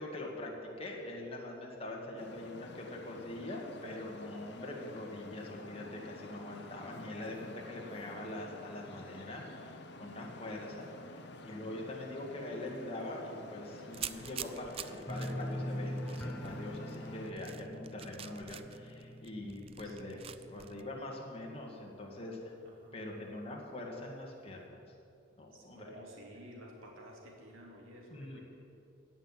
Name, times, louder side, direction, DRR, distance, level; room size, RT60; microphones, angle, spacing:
voice 1, 0.0-20.2 20.5-22.5 22.9-24.8 25.4-26.0 28.1-28.4, left 1 dB, 30° left, -1 dB, 2.0 m, -43 dB
Traffic noise roadway noise, 2.2-17.3, left 2 dB, 55° left, 0.8 m, -50 dB
sound 1, 13.9-20.8, right 10 dB, 30° right, 0.3 m, -47 dB
sound 2, 15.1-21.9 22.2-22.8 23.1-23.2, left 1 dB, 10° left, 0.7 m, -43 dB
voice 2, 19.8-20.2 22.6-23.2 25.5-28.4, equal, 80° right, -1 dB, 2.8 m, -53 dB
16.0 x 5.9 x 9.1 m, 2.7 s
head